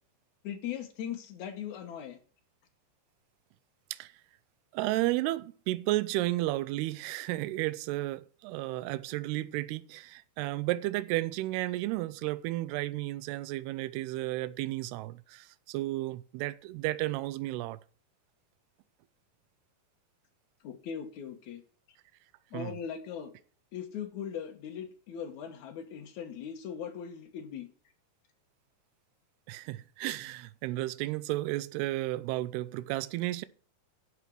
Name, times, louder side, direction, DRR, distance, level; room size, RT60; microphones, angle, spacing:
voice 1, 0.4-2.2 20.6-21.6 22.5-23.3 23.7-27.7, left 8 dB, 75° left, 1.7 m, -39 dB
voice 2, 4.7-17.8 22.5-22.8 29.5-33.5, right 17 dB, 80° right, 2.4 m, -33 dB
11.0 x 7.4 x 6.1 m
omnidirectional pair, 5.1 m